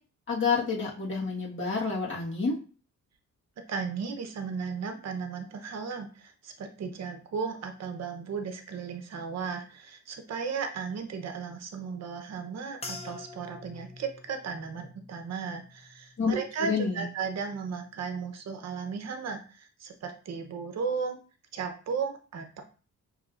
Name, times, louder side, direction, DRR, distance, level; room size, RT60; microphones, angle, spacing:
voice 1, 0.3-2.6 16.2-17.0, left 4 dB, 40° left, -4 dB, 1.5 m, -29 dB
voice 2, 3.7-21.2 21.5-22.6, right 5 dB, 55° right, 5 dB, 0.8 m, -35 dB
sound 1, 12.8-17.3 17.7-18.3 18.9-19.2, left 3 dB, 20° left, 0.6 m, -47 dB
6.4 x 3.1 x 2.5 m, 0.38 s
wide cardioid pair, 165°, 31 cm